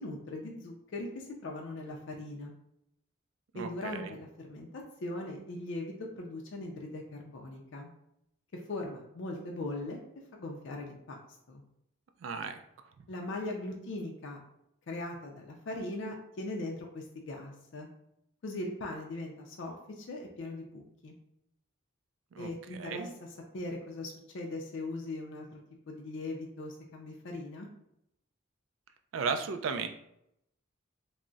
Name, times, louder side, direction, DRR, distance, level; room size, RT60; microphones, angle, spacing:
voice 1, 0.0-2.5 3.5-4.7 5.0-7.9 8.5-10.0 10.3-11.2 11.5-11.6 13.1-14.4 14.9-17.9 18.4-21.1 22.4-23.1 23.5-25.6 25.9-27.7, left 2 dB, 60° left, 1 dB, 0.4 m, -40 dB
voice 2, 3.5-4.1 12.2-12.6 22.3-23.1 29.1-29.9, right 5 dB, 70° right, 7 dB, 0.3 m, -35 dB
2.3 x 2.0 x 3.8 m, 0.78 s
head